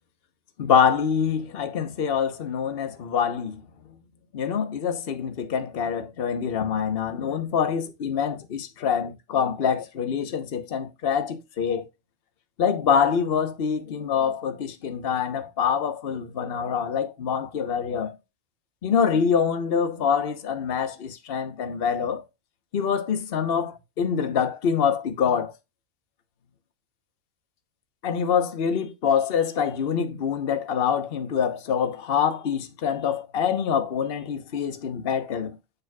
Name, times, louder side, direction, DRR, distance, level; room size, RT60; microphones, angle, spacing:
voice 1, 0.6-3.6 4.3-11.9 12.6-18.1 18.8-22.2 22.7-25.5 28.0-35.6, left 7 dB, 45° left, 1.1 m, -25 dB
6.9 x 6.5 x 2.3 m
omnidirectional pair, 1.5 m